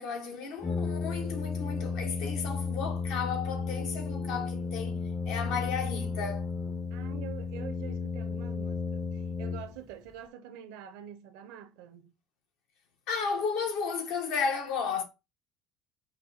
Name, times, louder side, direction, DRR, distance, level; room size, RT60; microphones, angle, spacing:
voice 1, 0.0-5.0 5.3-6.5 13.1-15.0, left 5 dB, 80° left, 1.2 m, -33 dB
Brass instrument, 0.6-10.1, left 4 dB, 15° left, 0.4 m, -33 dB
voice 2, 6.9-12.1, right 10 dB, 85° right, 0.6 m, -46 dB
5.4 x 2.3 x 4.0 m
supercardioid pair, 115°, 0 cm